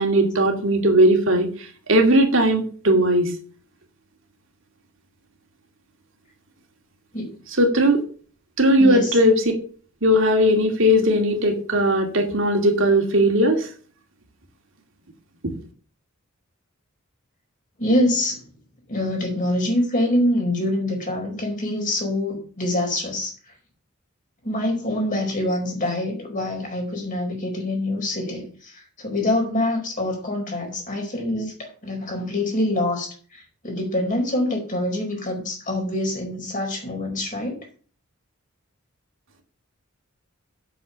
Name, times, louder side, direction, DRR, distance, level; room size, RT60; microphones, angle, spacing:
voice 1, 0.0-1.5 1.9-3.3 7.6-8.0 8.6-9.4 10.0-13.7, equal, 65° right, 3 dB, 2.5 m, -18 dB
voice 2, 8.8-9.2 17.8-18.4 18.9-23.5 24.4-37.6, left 1 dB, 40° left, 1 dB, 4.8 m, -25 dB
8.2 x 7.3 x 7.0 m, 0.41 s
head